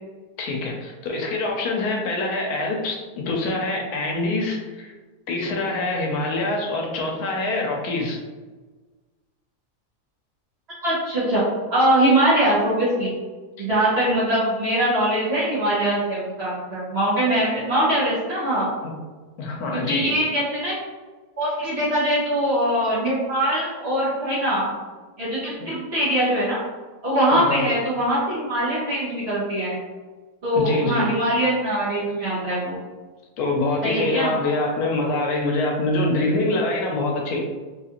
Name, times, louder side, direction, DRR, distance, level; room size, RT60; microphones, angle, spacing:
voice 1, 0.4-4.9 5.3-8.2 13.6-13.7 19.4-20.1 27.3-27.6 30.5-31.1 33.4-37.4, left 2 dB, 80° left, 0 dB, 1.1 m, -25 dB
voice 2, 10.8-11.4 11.7-13.1 13.6-18.7 19.7-20.7 21.4-24.7 25.2-26.6 27.0-29.7 30.4-32.8 33.8-34.3, right 1 dB, 50° right, -8 dB, 1.0 m, -22 dB
3.4 x 2.4 x 2.8 m, 1.3 s
omnidirectional pair, 1.6 m